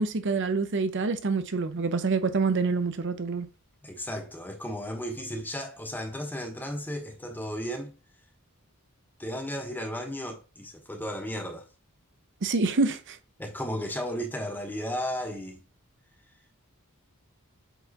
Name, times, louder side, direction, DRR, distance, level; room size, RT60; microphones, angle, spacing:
voice 1, 0.0-3.5 12.4-13.2, right 4 dB, 55° right, 0.7 m, -26 dB
voice 2, 3.8-7.9 9.2-11.6 13.4-15.6, equal, 10° left, 1.1 m, -34 dB
7.9 x 4.6 x 2.9 m
head